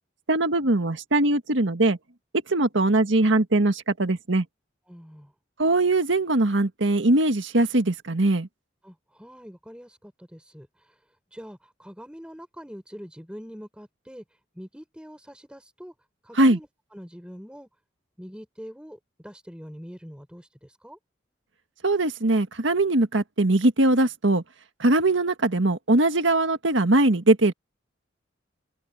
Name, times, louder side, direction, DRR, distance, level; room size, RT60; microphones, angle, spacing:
voice 1, 0.3-2.0 2.5-4.4 5.6-8.5 16.4-16.6 21.8-24.4 24.8-27.5, right 2 dB, 80° right, 1.7 m, -21 dB
voice 2, 4.9-5.3 8.8-10.9 11.3-14.2 14.5-15.9 16.2-17.7 18.2-21.0, equal, 5° right, 6.1 m, -44 dB
head